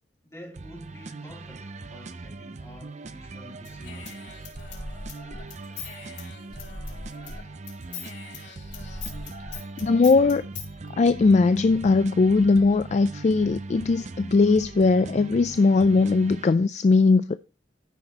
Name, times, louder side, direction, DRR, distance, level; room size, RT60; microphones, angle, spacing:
voice 1, 0.3-4.3, equal, 15° left, 3.1 m, -47 dB
sound 1, 0.5-16.5, right 3 dB, 40° right, 0.6 m, -40 dB
Human voice / Scissors, 3.6-7.4 7.7-10.7, left 4 dB, 75° left, 4.7 m, -40 dB
voice 2, 8.5-9.0 9.8-10.4 11.0-17.4, left 3 dB, 40° left, 0.3 m, -20 dB
14.0 x 5.9 x 2.8 m
head